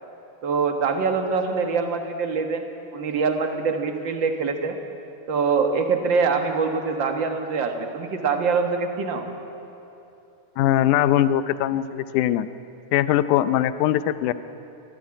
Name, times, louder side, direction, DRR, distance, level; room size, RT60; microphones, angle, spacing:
voice 1, 0.4-2.7 2.9-4.8 5.3-9.2, right 5 dB, 50° right, 5 dB, 1.5 m, -24 dB
voice 2, 10.6-12.5 12.9-14.3, left 12 dB, 75° left, 13 dB, 2.0 m, -21 dB
23.5 x 16.0 x 8.8 m, 2.8 s
omnidirectional pair, 3.9 m